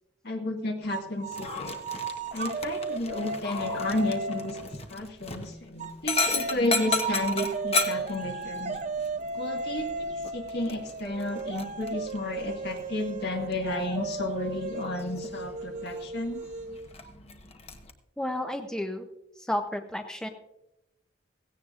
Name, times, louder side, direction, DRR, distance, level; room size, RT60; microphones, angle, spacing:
voice 1, 0.2-1.8 2.3-8.8 9.4-16.4, left 2 dB, 60° left, 2 dB, 1.8 m, -32 dB
sound 1, 0.9-4.8 5.8-17.1, right 4 dB, 40° right, 0.6 m, -35 dB
Dog, 1.3-17.9, left 3 dB, 35° left, 1.1 m, -36 dB
voice 2, 18.2-19.1 19.4-20.3, left 1 dB, 5° left, 5 dB, 0.7 m, -32 dB
16.5 x 16.0 x 2.5 m, 0.91 s
head